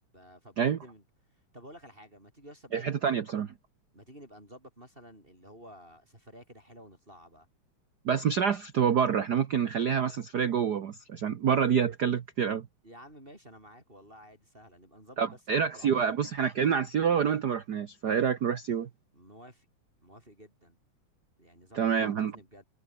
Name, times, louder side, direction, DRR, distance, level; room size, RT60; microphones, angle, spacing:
voice 1, 0.1-1.0 1.3-3.2 3.9-7.5 12.8-16.0 19.1-19.7 20.0-20.8 21.4-22.6, equal, 15° right, 7.3 m, -52 dB
voice 2, 2.7-3.5 8.0-12.7 15.2-18.9 21.7-22.3, right 7 dB, 90° right, 0.8 m, -27 dB
omnidirectional pair, 3.4 m